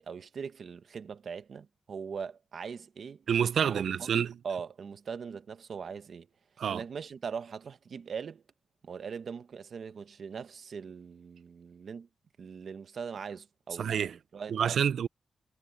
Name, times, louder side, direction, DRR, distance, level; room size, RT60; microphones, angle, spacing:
voice 1, 0.1-3.2 3.6-4.1 4.4-6.3 6.7-8.4 8.8-12.1 12.4-14.8, right 6 dB, 50° right, 1.0 m, -41 dB
voice 2, 3.3-4.3 6.6-6.8 13.8-14.1 14.5-15.1, right 8 dB, 70° right, 0.4 m, -28 dB
wide cardioid pair, 180°, 0 cm